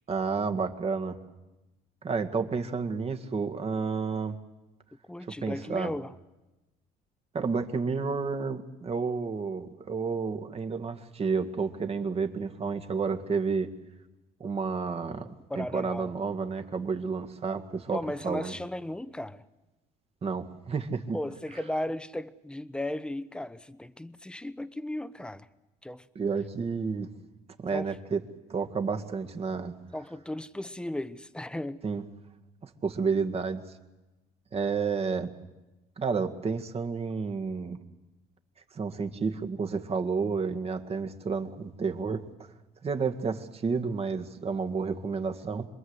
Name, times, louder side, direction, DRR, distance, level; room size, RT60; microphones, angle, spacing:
voice 1, 0.1-1.2 2.0-4.4 5.4-5.9 7.3-13.7 14.4-15.3 15.5-18.5 20.2-21.2 26.2-27.1 27.6-28.2 28.5-29.7 31.8-32.0 32.6-33.6 34.5-35.3 36.0-37.8 38.7-42.2 42.8-45.7, right 5 dB, 35° right, 2.0 m, -30 dB
voice 2, 5.1-6.1 15.5-16.1 17.9-19.4 21.1-25.5 25.8-26.0 27.7-27.9 29.9-31.8, left 1 dB, 5° left, 0.9 m, -35 dB
27.0 x 21.5 x 8.2 m
cardioid pair, 110°, 17 cm